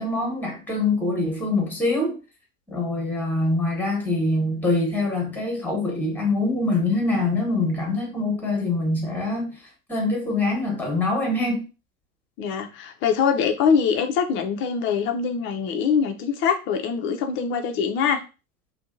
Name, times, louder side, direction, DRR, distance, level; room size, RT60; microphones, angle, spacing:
voice 1, 0.0-2.2 2.7-9.5 9.9-11.6, left 2 dB, 5° left, 1.0 m, -24 dB
voice 2, 12.4-18.2, left 6 dB, 30° left, 0.4 m, -23 dB
2.6 x 2.2 x 2.5 m
hypercardioid pair, 95°, 44 cm